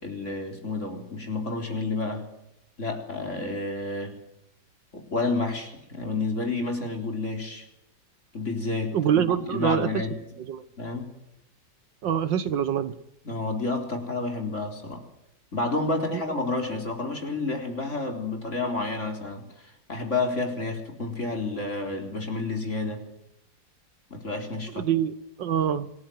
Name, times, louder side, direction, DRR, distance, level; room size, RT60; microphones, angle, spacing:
voice 1, 0.0-2.2 2.8-4.2 4.9-7.7 8.3-9.2 9.5-10.2 10.8-11.1 13.2-15.0 15.5-23.1 24.1-24.8, left 3 dB, 40° left, 3 dB, 4.3 m, -30 dB
voice 2, 8.9-9.9 10.5-10.6 12.0-13.0 16.1-16.2 24.7-25.1 25.4-25.9, right 9 dB, 80° right, 13 dB, 1.9 m, -25 dB
27.0 x 18.5 x 9.5 m, 0.84 s
omnidirectional pair, 2.0 m